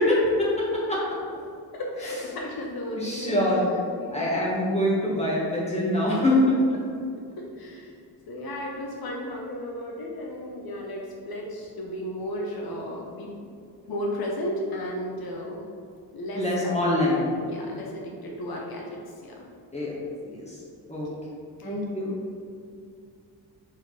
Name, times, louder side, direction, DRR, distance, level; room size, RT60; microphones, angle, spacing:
voice 1, 0.1-1.0 3.0-3.7 4.1-6.8 16.3-17.2 19.7-19.9 20.2-20.6 20.9-21.1 21.6-22.1, left 1 dB, 15° left, -7 dB, 1.4 m, -24 dB
voice 2, 1.7-3.4 4.0-4.4 7.4-7.9 8.3-13.3 13.9-15.6 16.1-16.8 17.4-18.9 19.2-19.4 21.6-22.2, left 1 dB, 65° left, -2 dB, 1.1 m, -34 dB
4.6 x 4.5 x 5.9 m, 2.3 s
wide cardioid pair, 165°, 39 cm